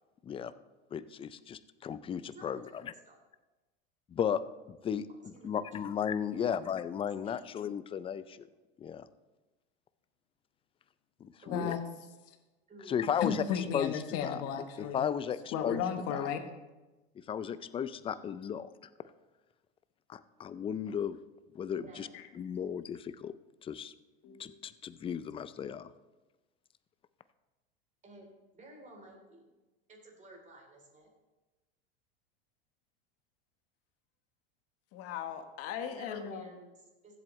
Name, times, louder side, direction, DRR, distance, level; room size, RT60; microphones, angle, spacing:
voice 1, 0.9-2.9 4.1-4.4 4.7-5.0 5.4-8.5 8.8-9.1 11.2-11.8 12.9-13.4 13.7-14.4 14.8-15.8 16.1-16.3 17.3-18.7 20.1-21.2 21.5-22.1 22.4-23.3 23.6-23.9 24.4-25.9, left 8 dB, 20° left, 15 dB, 0.4 m, -35 dB
voice 2, 2.3-3.1 5.3-5.9 6.3-6.5 7.2-7.4 11.4-11.9 12.7-13.3 21.8-22.1 28.0-28.3 28.5-29.5 29.9-31.1 35.9-37.1, right 2 dB, 25° right, 1 dB, 3.3 m, -53 dB
voice 3, 11.5-11.8 13.2-15.1 15.5-16.4 24.2-24.5 34.9-36.5, left 7 dB, 50° left, 7 dB, 1.3 m, -35 dB
15.0 x 7.8 x 3.2 m, 1.1 s
supercardioid pair, 105°, 31 cm